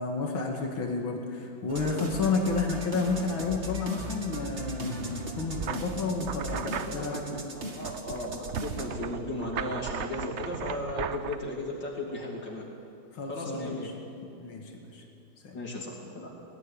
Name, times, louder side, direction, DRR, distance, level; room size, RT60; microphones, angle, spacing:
voice 1, 0.0-7.2 13.2-13.9 14.4-14.6 14.9-15.0 15.4-15.6, left 4 dB, 80° left, 1 dB, 2.9 m, -31 dB
sound 1, 1.7-8.8, right 1 dB, 35° right, 2.1 m, -38 dB
sound 2, 5.6-11.4, right 8 dB, 80° right, 0.6 m, -37 dB
voice 2, 6.5-12.7 13.3-13.9 15.5-16.3, left 1 dB, 60° left, -3 dB, 3.4 m, -36 dB
20.0 x 18.0 x 9.9 m, 2.6 s
omnidirectional pair, 2.1 m